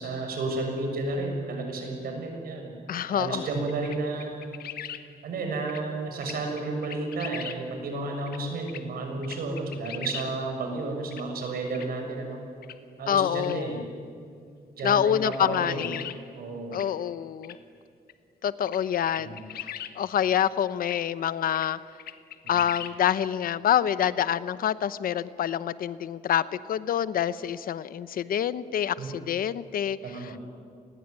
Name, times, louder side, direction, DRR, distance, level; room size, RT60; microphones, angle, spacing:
voice 1, 0.0-2.7 3.1-4.3 5.2-12.4 13.0-13.8 14.8-15.9 16.3-16.8 19.2-19.4 29.0-29.1 30.0-30.4, right 3 dB, 75° right, 3 dB, 6.8 m, -32 dB
voice 2, 2.9-3.5 13.1-13.8 14.8-16.2 16.7-17.6 18.4-21.8 22.5-30.4, left 9 dB, 70° left, 15 dB, 0.9 m, -27 dB
sound 1, 3.7-5.0 5.7-5.8 6.2-7.6 8.3-8.4 8.7-8.8 9.2-10.3 11.1-11.2 11.7-11.9 12.6-12.8 13.4-13.6 14.8-14.9 15.3-16.2 16.7-16.9 17.4-17.6 18.1-18.2 18.7-18.8 19.1-19.9 20.5-20.6 20.8-21.0 21.5-21.7 22.0-22.9, left 10 dB, 85° left, 1.5 m, -39 dB
29.0 x 20.5 x 9.7 m, 2.5 s
wide cardioid pair, 160°, 15 cm